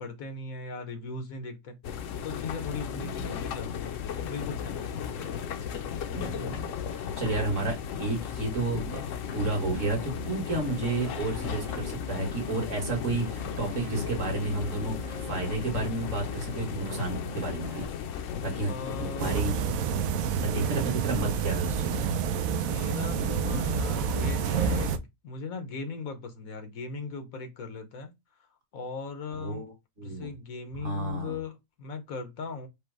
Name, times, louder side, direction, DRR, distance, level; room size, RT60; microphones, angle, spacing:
voice 1, 0.0-1.8 2.2-4.0 4.2-5.5 18.7-19.5 20.5-21.1 22.6-28.1 28.7-29.6 30.0-32.7, left 4 dB, 90° left, 1.4 m, -38 dB
sound 1, 1.8-19.4, left 8 dB, 70° left, 0.9 m, -35 dB
voice 2, 3.0-3.5 6.1-6.6 7.0-9.0 9.3-17.9 18.4-19.5 20.3-22.2 23.2-23.6 29.4-30.3 30.7-31.4, right 2 dB, 65° right, 1.9 m, -32 dB
sound 2, 9.7-17.9, right 4 dB, 40° right, 0.5 m, -43 dB
sound 3, 19.2-25.0, right 6 dB, 85° right, 1.0 m, -28 dB
5.1 x 2.1 x 4.6 m
omnidirectional pair, 1.4 m